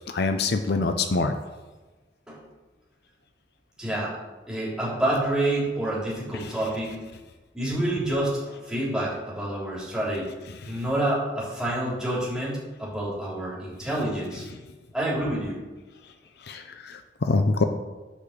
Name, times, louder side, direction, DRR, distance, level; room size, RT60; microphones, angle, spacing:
voice 1, 0.1-1.3 16.5-17.6, left 3 dB, 60° left, 7 dB, 0.6 m, -25 dB
voice 2, 3.8-4.1 4.5-7.0 7.5-10.3 10.7-14.5 14.9-15.6, right 1 dB, 5° right, -7 dB, 3.2 m, -28 dB
8.4 x 5.0 x 7.1 m, 1.2 s
head